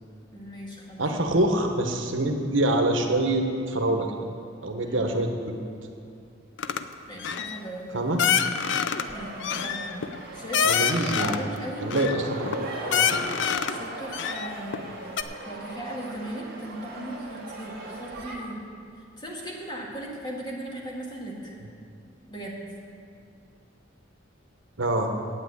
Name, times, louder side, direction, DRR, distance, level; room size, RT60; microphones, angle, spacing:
voice 1, 0.3-1.1 4.8-5.2 7.0-7.9 9.1-9.9 10.3-11.8 13.7-15.0 15.5-18.6 19.2-21.6 22.3-22.6, right 1 dB, 25° left, -3 dB, 2.1 m, -37 dB
voice 2, 1.0-4.1 4.6-5.5 7.9-8.2 10.6-11.4 11.8-12.6 12.9-13.2 24.8-25.1, right 1 dB, 75° right, 4 dB, 1.2 m, -25 dB
sound 1, 6.6-6.8 7.2-7.6 8.2-9.1 9.4-11.5 11.9-12.6 12.9-13.8 14.1-14.8 15.2-15.3, left 7 dB, 65° left, 0.5 m, -26 dB
sound 2, 9.0-18.3, right 2 dB, 55° right, 2.7 m, -39 dB
9.0 x 8.8 x 8.5 m, 2.4 s
head